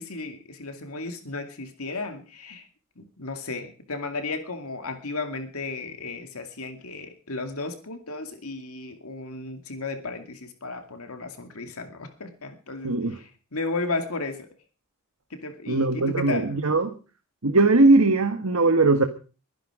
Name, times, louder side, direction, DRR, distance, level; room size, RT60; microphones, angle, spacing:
voice 1, 0.0-2.7 3.0-14.5 15.3-16.7, left 3 dB, 70° left, 6 dB, 2.4 m, -34 dB
voice 2, 12.8-13.2 15.7-16.9 17.4-19.0, right 3 dB, 70° right, 6 dB, 1.6 m, -20 dB
23.0 x 10.5 x 5.0 m, 0.37 s
head